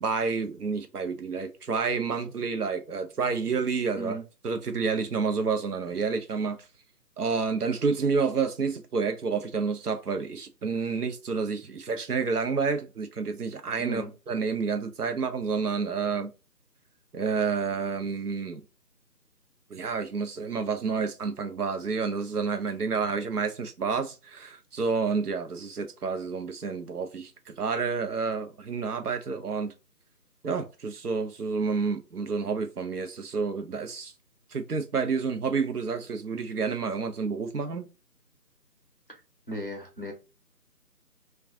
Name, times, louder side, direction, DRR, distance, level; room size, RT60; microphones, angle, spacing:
voice 1, 0.0-4.2 4.4-6.6 7.2-16.3 17.1-18.6 19.7-29.7 30.4-34.1 34.5-37.9, right 5 dB, 65° right, 0.7 m, -29 dB
voice 2, 13.8-14.1 39.1-39.2 39.5-40.1, right 1 dB, 35° left, 0.7 m, -36 dB
2.5 x 2.3 x 3.5 m
figure-of-eight pair, 170°, 50 cm